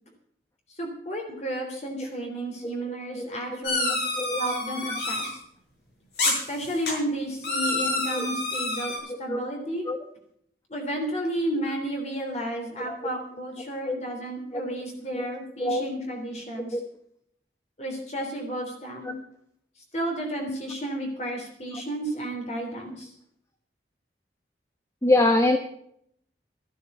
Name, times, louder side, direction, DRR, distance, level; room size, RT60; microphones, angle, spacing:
voice 1, 0.8-4.0 4.4-5.4 6.2-9.9 10.7-16.8 17.8-19.2 19.9-23.1, right 1 dB, 40° left, 1 dB, 3.4 m, -32 dB
voice 2, 2.6-3.3 4.2-4.4 8.1-8.3 9.3-9.4 9.9-10.0 12.8-13.0 13.9-14.0 14.5-14.6 15.1-15.3 15.6-15.8 16.7-16.8 25.0-25.6, left 2 dB, 15° left, 6 dB, 1.0 m, -24 dB
sound 1, 3.6-5.3 6.2-6.9 7.4-9.0, left 2 dB, 65° left, 7.4 m, -28 dB
13.5 x 13.0 x 5.4 m, 0.70 s
head